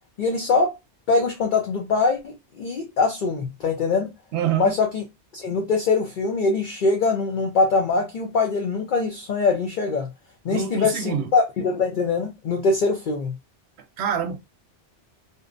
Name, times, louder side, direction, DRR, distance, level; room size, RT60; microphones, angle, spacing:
voice 1, 0.2-0.7 1.1-4.1 4.6-5.0 5.3-10.1 10.4-13.3, left 4 dB, 55° left, 0.6 m, -23 dB
voice 2, 4.3-4.7 10.5-11.3 14.0-14.4, right 8 dB, 70° right, 0.8 m, -25 dB
2.6 x 2.1 x 2.4 m
omnidirectional pair, 1.2 m